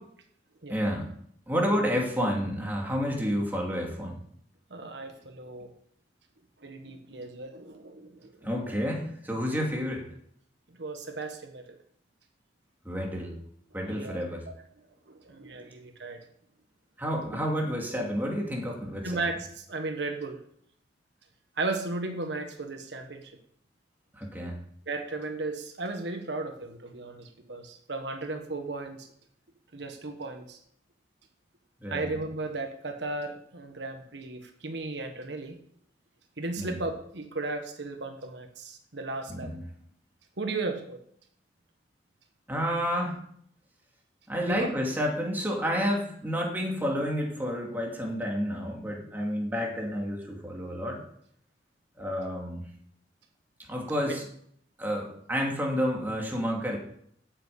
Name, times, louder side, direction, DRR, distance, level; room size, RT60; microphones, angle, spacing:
voice 1, 0.7-1.1 1.5-4.2 8.4-10.0 12.8-13.3 13.7-14.4 17.0-19.2 24.1-24.6 31.8-32.1 36.6-36.7 39.3-39.6 42.5-43.2 44.3-51.0 52.0-52.6 53.7-54.2 54.8-56.8, equal, 10° right, -1 dB, 2.6 m, -30 dB
voice 2, 4.7-5.7 6.6-8.7 10.8-11.8 13.8-14.2 15.1-16.2 19.0-20.4 21.6-23.3 24.9-29.1 29.7-30.6 31.9-35.6 36.4-39.5 40.4-41.0 44.5-44.7 54.1-54.2, right 3 dB, 80° right, 5 dB, 1.4 m, -35 dB
8.8 x 7.8 x 8.6 m, 0.67 s
head